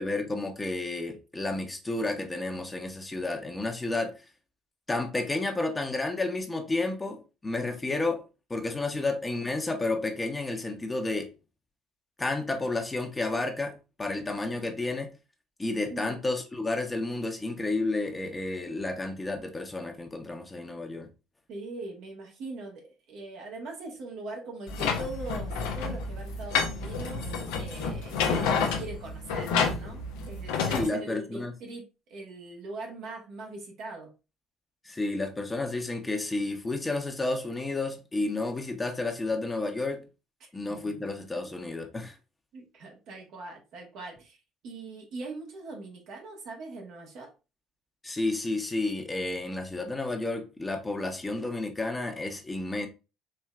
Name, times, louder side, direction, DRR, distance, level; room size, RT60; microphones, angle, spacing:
voice 1, 0.0-4.1 4.9-8.2 8.5-11.3 12.2-15.1 15.6-21.1 30.7-31.5 34.8-40.0 40.5-42.2 48.0-52.9, left 2 dB, 20° left, 0.9 m, -31 dB
voice 2, 21.5-27.2 27.5-31.8 32.1-34.1 40.4-41.1 42.5-44.4 44.6-47.3, right 2 dB, 65° right, 1.4 m, -41 dB
sound 1, 24.7-30.9, left 5 dB, 75° left, 0.7 m, -29 dB
4.4 x 3.1 x 2.4 m
hypercardioid pair, 60°, 0 cm